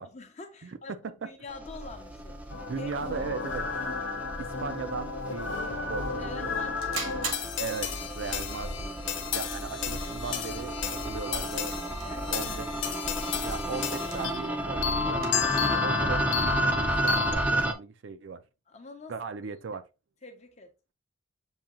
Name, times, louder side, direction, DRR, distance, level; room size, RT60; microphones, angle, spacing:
voice 1, 0.0-2.3 2.7-2.9 6.2-7.0 12.0-12.4 18.7-19.1 19.4-19.5 20.2-20.7, left 3 dB, 35° left, 0.8 m, -45 dB
sound 1, 1.5-17.7, right 1 dB, 5° right, 0.4 m, -33 dB
sound 2, 1.7-15.8, right 5 dB, 85° right, 1.2 m, -46 dB
sound 3, 2.5-14.5 14.8-17.3, left 6 dB, 65° left, 0.7 m, -33 dB
voice 2, 2.5-3.7 4.4-6.5 7.6-8.9 9.3-11.7 12.3-12.7 13.4-18.4 19.1-19.8, right 5 dB, 65° right, 0.4 m, -38 dB
7.1 x 2.8 x 2.4 m
head